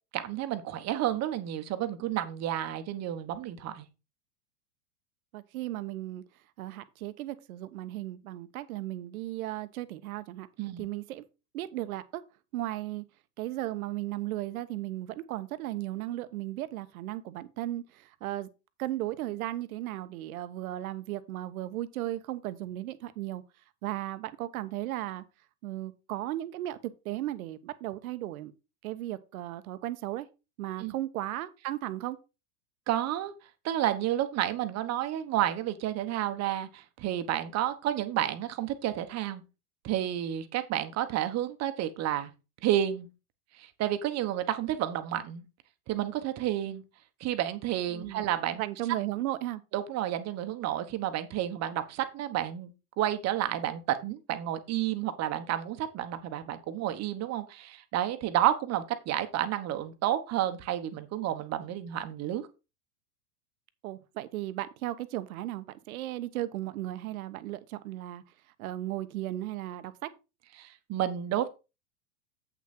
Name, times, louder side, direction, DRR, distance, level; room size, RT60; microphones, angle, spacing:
voice 1, 0.1-3.9 10.6-10.9 30.8-30.9 32.9-33.3 33.6-39.4 39.8-42.3 42.6-43.1 43.6-45.4 45.9-46.8 47.2-48.6 49.7-52.7 53.0-62.5 70.6-71.5, right 12 dB, 35° right, 1.2 m, -30 dB
voice 2, 5.3-6.2 6.6-10.5 10.8-11.2 11.5-12.2 12.5-13.0 13.4-18.5 18.8-23.4 23.8-25.2 25.6-28.5 28.8-30.3 30.6-32.2 47.9-48.3 48.6-49.6 63.8-68.2 68.6-70.1, right 15 dB, 70° right, 1.1 m, -35 dB
8.2 x 6.1 x 4.3 m
hypercardioid pair, 120°, 45 cm